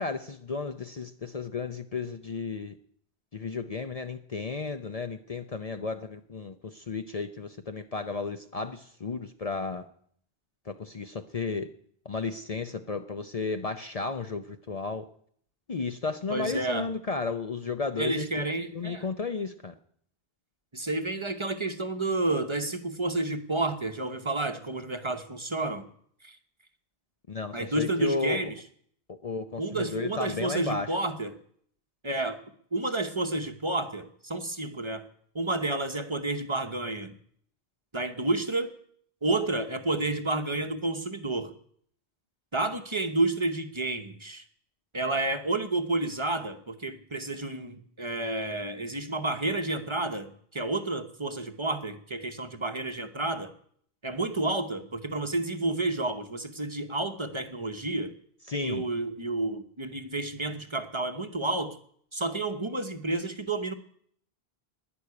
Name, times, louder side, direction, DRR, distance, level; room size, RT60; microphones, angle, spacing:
voice 1, 0.0-2.7 3.3-9.9 10.7-11.7 12.1-15.0 15.7-18.5 18.7-19.7 27.3-28.4 29.1-30.9 58.5-58.8, left 4 dB, 40° left, 8 dB, 0.7 m, -33 dB
voice 2, 16.3-16.9 18.0-19.1 20.7-25.9 26.2-26.4 27.5-28.5 29.6-31.4 32.0-32.4 32.7-35.1 35.3-37.1 37.9-38.7 39.2-41.5 42.5-44.4 44.9-53.5 54.0-58.1 58.6-61.8 62.1-63.7, right 2 dB, 30° right, 7 dB, 1.0 m, -30 dB
11.5 x 10.5 x 9.7 m, 0.63 s
omnidirectional pair, 1.0 m